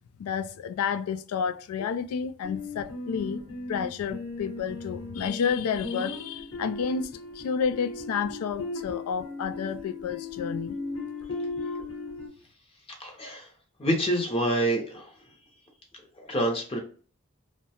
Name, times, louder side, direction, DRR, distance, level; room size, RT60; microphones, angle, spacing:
voice 1, 0.2-3.4 3.7-7.1 7.4-10.8, left 6 dB, 85° left, 0.3 m, -30 dB
sound 1, 2.4-12.3, left 2 dB, 60° left, 1.0 m, -37 dB
voice 2, 13.0-13.5 13.8-15.1 16.2-16.8, right 1 dB, 25° left, 0.6 m, -27 dB
2.6 x 2.1 x 2.8 m
head